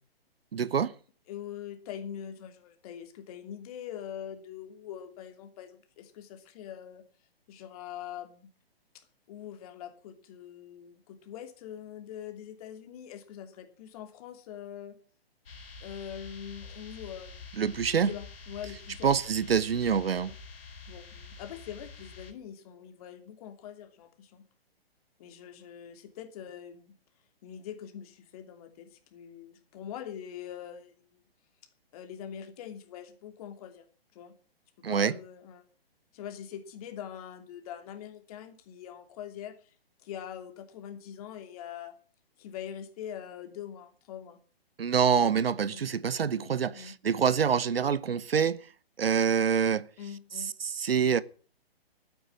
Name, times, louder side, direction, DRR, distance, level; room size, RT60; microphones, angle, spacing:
voice 1, 0.5-0.9 17.6-18.1 19.0-20.3 34.8-35.1 44.8-48.7 49.0-49.9 50.6-51.2, right 7 dB, 70° right, 1.0 m, -26 dB
voice 2, 1.3-7.0 7.5-8.5 8.9-14.9 15.8-17.5 18.0-19.1 20.3-20.4 20.9-24.4 25.2-26.9 27.4-30.9 31.9-33.8 34.1-34.3 34.8-35.6 36.1-39.7 40.0-41.9 42.4-44.4 45.0-45.2 45.7-45.8 46.4-46.9 50.0-50.5, left 9 dB, 35° left, 2.8 m, -43 dB
sound 1, 15.5-22.3, left 4 dB, 65° left, 4.2 m, -47 dB
12.5 x 9.6 x 7.6 m
figure-of-eight pair, 135°, 31 cm